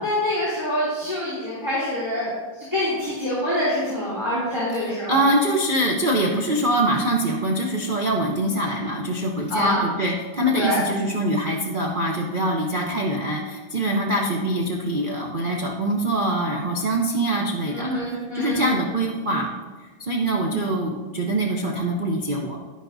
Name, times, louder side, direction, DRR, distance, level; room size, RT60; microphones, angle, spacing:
voice 1, 0.0-2.3 2.7-5.2 9.5-9.8 10.5-10.8 17.7-18.6, left 1 dB, 10° right, -9 dB, 2.7 m, -25 dB
voice 2, 4.7-17.9 18.3-19.5 20.0-22.6, right 1 dB, 65° right, -1 dB, 0.5 m, -24 dB
10.5 x 10.5 x 2.7 m, 1.3 s
omnidirectional pair, 2.2 m